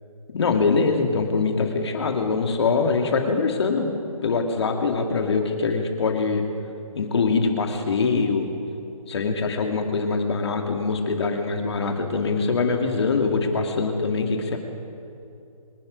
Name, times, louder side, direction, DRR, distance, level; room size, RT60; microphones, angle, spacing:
voice 1, 0.3-3.9 4.2-6.4 7.0-8.5 9.1-14.6, left 4 dB, 45° left, 4 dB, 2.0 m, -23 dB
25.0 x 10.5 x 5.1 m, 2.6 s
hypercardioid pair, 165°, 19 cm